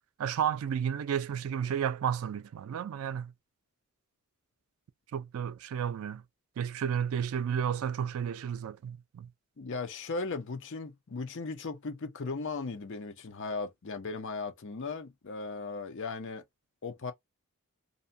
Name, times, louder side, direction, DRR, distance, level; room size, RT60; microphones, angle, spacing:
voice 1, 0.2-3.3 5.1-6.2 6.6-9.3, right 8 dB, 70° right, 0.3 m, -32 dB
voice 2, 9.6-16.4 16.8-17.1, left 3 dB, 55° left, 0.6 m, -37 dB
2.6 x 2.1 x 2.6 m
head